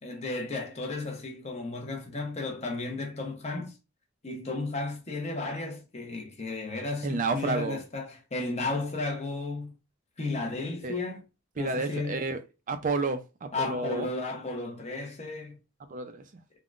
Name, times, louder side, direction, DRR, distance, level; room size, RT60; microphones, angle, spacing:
voice 1, 0.0-3.8 4.2-9.7 10.2-11.2 11.6-12.2 13.5-15.6, left 3 dB, 30° left, 0.7 m, -34 dB
voice 2, 7.0-7.8 10.8-10.9 11.6-12.4 12.7-14.1 15.9-16.2, right 3 dB, 40° right, 0.4 m, -30 dB
3.6 x 2.1 x 2.4 m
head